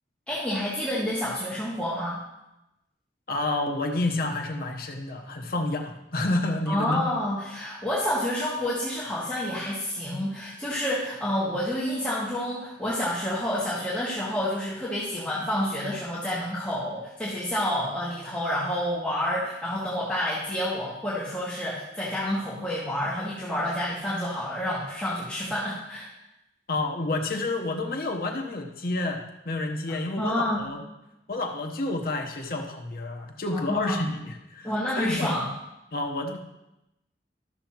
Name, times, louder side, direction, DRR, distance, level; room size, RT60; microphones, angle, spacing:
voice 1, 0.3-2.2 6.7-26.1 30.2-30.7 33.5-34.0 34.6-35.5, left 1 dB, 5° left, -11 dB, 1.9 m, -29 dB
voice 2, 3.3-7.1 26.7-30.8 31.3-35.4 35.9-36.4, left 2 dB, 55° left, 2 dB, 1.0 m, -29 dB
13.5 x 6.9 x 3.0 m, 0.91 s
head